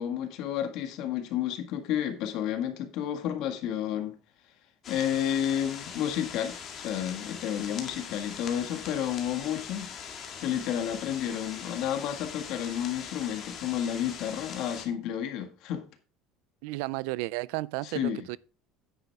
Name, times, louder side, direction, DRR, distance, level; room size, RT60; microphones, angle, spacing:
voice 1, 0.0-4.1 4.9-9.9 10.4-15.8 17.8-18.3, left 10 dB, 50° left, 1.8 m, -31 dB
sound 1, 4.8-14.9, left 7 dB, 30° left, 1.9 m, -42 dB
voice 2, 16.6-18.4, right 20 dB, 70° right, 0.4 m, -33 dB
9.9 x 8.9 x 3.5 m
cardioid pair, 165°, 0 cm